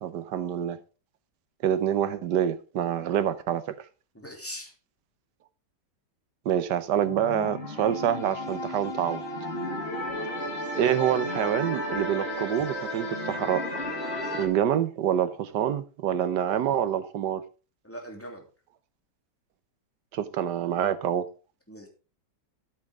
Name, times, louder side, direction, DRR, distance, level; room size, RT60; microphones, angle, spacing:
voice 1, 0.0-0.8 1.6-3.7 6.4-9.2 10.7-13.6 14.4-17.4 20.1-21.2, right 10 dB, 70° right, 1.4 m, -26 dB
voice 2, 4.1-4.7 17.8-18.4 21.7-21.9, equal, 5° left, 3.0 m, -41 dB
sound 1, 7.0-14.5, left 1 dB, 35° left, 2.3 m, -33 dB
13.5 x 8.3 x 3.7 m
omnidirectional pair, 1.9 m